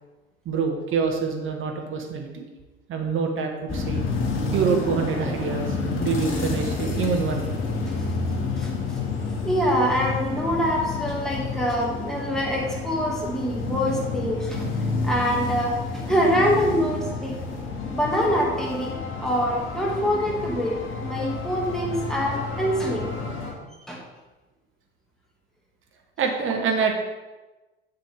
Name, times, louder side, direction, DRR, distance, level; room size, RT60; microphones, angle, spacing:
voice 1, 0.4-2.5 2.9-4.0 4.5-7.5 26.2-26.9, right 5 dB, 40° right, 3 dB, 1.3 m, -26 dB
sound 1, 3.7-23.5, left 3 dB, 40° left, 2.3 m, -29 dB
voice 2, 8.6-9.0 9.4-14.7 15.0-17.4 17.9-19.0 19.2-20.8 21.0-23.1 23.9-24.0, equal, ahead, -4 dB, 2.4 m, -25 dB
8.3 x 7.9 x 3.6 m, 1.1 s
figure-of-eight pair, 65°, 33 cm